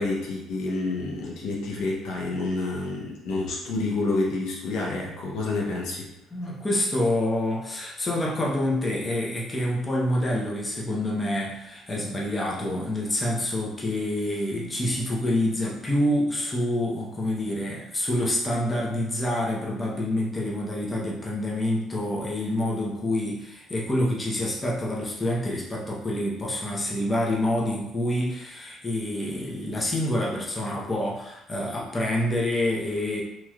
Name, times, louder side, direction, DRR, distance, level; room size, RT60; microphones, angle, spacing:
voice 1, 0.0-6.1, left 2 dB, 75° left, -3 dB, 0.8 m, -28 dB
voice 2, 6.3-33.2, left 1 dB, 20° left, -4 dB, 0.9 m, -27 dB
3.1 x 2.9 x 2.4 m, 0.87 s
supercardioid pair, 85°, 0 cm